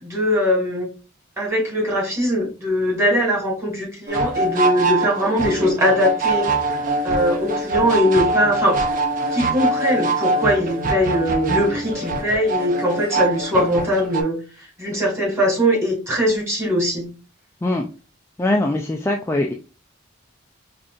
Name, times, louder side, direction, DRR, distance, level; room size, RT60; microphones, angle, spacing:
voice 1, 0.0-0.9 1.4-6.5 7.0-8.8 9.3-14.4 14.8-17.0, equal, 15° right, -1 dB, 1.7 m, -21 dB
sound 1, 4.1-14.2, right 2 dB, 45° right, 0.5 m, -23 dB
voice 2, 18.4-19.5, left 1 dB, 15° left, 1 dB, 0.3 m, -21 dB
5.2 x 2.5 x 2.4 m, 0.33 s
head